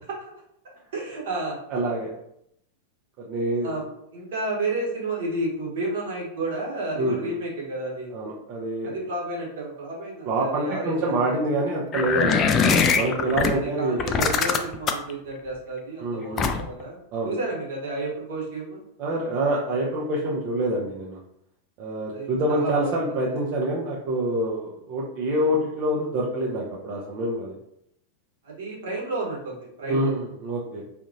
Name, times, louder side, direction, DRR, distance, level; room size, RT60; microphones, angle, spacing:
voice 1, 0.9-1.6 3.6-3.8 4.1-8.1 8.8-11.2 13.1-17.0 17.2-18.8 22.1-22.9 23.3-23.4 25.3-25.5 28.4-30.1, right 2 dB, 60° right, -3 dB, 1.1 m, -31 dB
voice 2, 1.7-2.1 3.3-3.7 7.0-7.3 8.1-8.9 10.3-12.4 12.9-14.0 16.0-16.5 17.1-17.3 19.0-21.2 21.8-27.5 29.9-30.8, right 1 dB, 40° right, -4 dB, 0.6 m, -26 dB
sound 1, 11.9-13.5 14.0-15.1 16.4-16.8, left 5 dB, 30° left, 0.3 m, -22 dB
3.7 x 2.6 x 2.5 m, 0.77 s
figure-of-eight pair, 90°, 0 cm